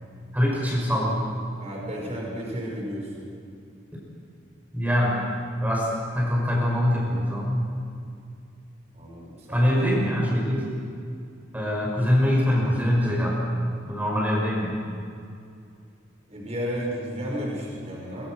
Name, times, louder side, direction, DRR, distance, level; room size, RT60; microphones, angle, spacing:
voice 1, 0.3-1.2 4.7-5.2 5.6-7.7 9.5-10.6 11.5-13.4 13.9-14.8, equal, 10° right, -3 dB, 5.8 m, -23 dB
voice 2, 1.6-3.3 8.9-9.7 16.3-18.3, equal, 35° right, -2 dB, 5.7 m, -33 dB
24.0 x 23.0 x 6.4 m, 2.4 s
head